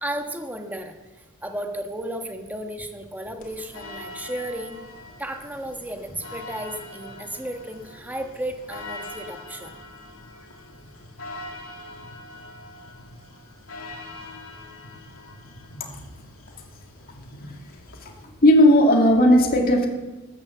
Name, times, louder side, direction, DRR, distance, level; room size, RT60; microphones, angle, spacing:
voice 1, 0.0-4.8 5.2-9.8, right 1 dB, 10° right, 4 dB, 1.3 m, -34 dB
sound 1, 3.4-18.2, left 2 dB, 70° left, 2.7 m, -42 dB
voice 2, 17.9-19.9, equal, 40° left, 1 dB, 2.1 m, -16 dB
13.5 x 11.0 x 7.2 m, 1.1 s
head